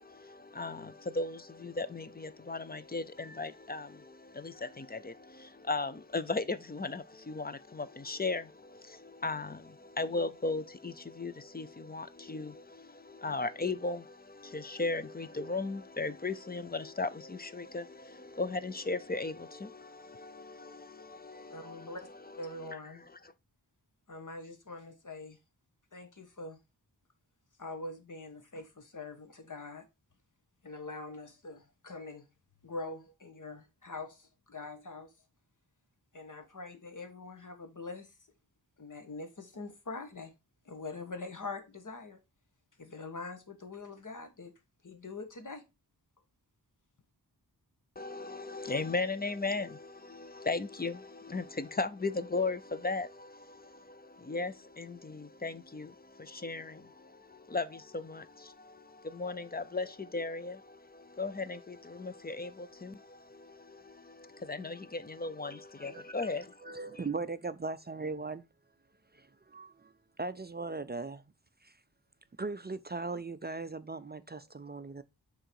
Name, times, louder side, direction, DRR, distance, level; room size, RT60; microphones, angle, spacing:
voice 1, 0.0-22.0 22.5-23.1 48.0-67.0, left 3 dB, 25° left, 0.5 m, -37 dB
voice 2, 21.5-22.1 22.4-23.0 24.1-25.4 25.9-26.6 27.6-29.9 30.6-32.3 32.6-35.1 36.1-38.1 38.8-40.3 40.6-42.2 42.8-44.5 44.8-45.6, left 3 dB, 50° left, 1.4 m, -44 dB
voice 3, 65.5-66.3 66.6-68.4 69.1-69.9 70.2-71.2 71.6-71.7 72.4-75.0, right 3 dB, 25° right, 0.4 m, -39 dB
6.4 x 3.9 x 4.5 m
wide cardioid pair, 85°, 40 cm